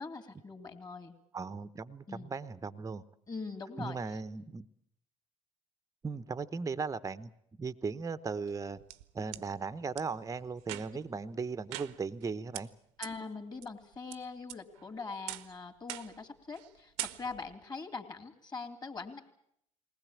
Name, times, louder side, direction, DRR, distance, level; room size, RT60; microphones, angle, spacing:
voice 1, 0.0-1.2 2.1-2.3 3.3-4.0 13.0-19.2, left 4 dB, 25° left, 5 dB, 3.1 m, -42 dB
voice 2, 1.3-3.0 3.8-4.7 6.0-7.3 7.6-8.8 9.1-12.7, right 4 dB, 20° right, 14 dB, 0.9 m, -37 dB
sound 1, 8.5-9.4 10.0-10.1 10.6-11.1 11.7-12.3 12.5-12.6 13.0-13.1 13.6-14.2 14.5-14.9 15.3-15.5 15.9-16.2 16.5-16.7 17.0-17.5, right 17 dB, 65° right, 0.9 m, -42 dB
20.5 x 19.5 x 8.6 m, 0.72 s
figure-of-eight pair, 65°, 17 cm